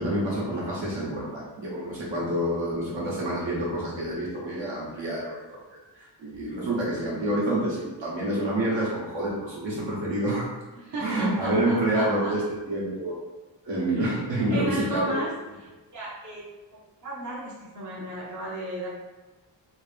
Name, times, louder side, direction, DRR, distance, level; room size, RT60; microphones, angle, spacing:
voice 1, 0.0-5.6 6.0-10.5 11.0-13.1 13.6-15.2, right 1 dB, 75° right, -6 dB, 1.3 m, -28 dB
voice 2, 10.8-12.3 13.9-14.0 14.5-15.3 15.6-15.7 15.9-16.4 16.7-18.9, right 1 dB, 45° right, -6 dB, 0.7 m, -34 dB
3.0 x 2.8 x 3.5 m, 1.2 s
wide cardioid pair, 175°, 44 cm